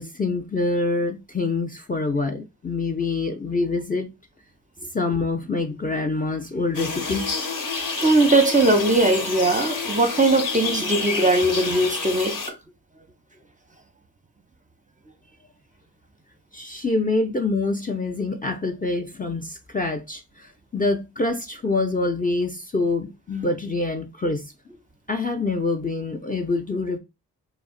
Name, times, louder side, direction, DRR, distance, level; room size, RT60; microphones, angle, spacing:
voice 1, 0.0-4.1 4.9-7.3 16.5-20.2 20.7-24.4 25.1-27.0, left 3 dB, 20° left, 0.5 m, -25 dB
sound 1, 6.7-12.5, left 4 dB, 55° left, 0.8 m, -29 dB
voice 2, 8.0-12.4, right 2 dB, 20° right, 0.6 m, -19 dB
2.4 x 2.1 x 3.7 m
cardioid pair, 45°, 40 cm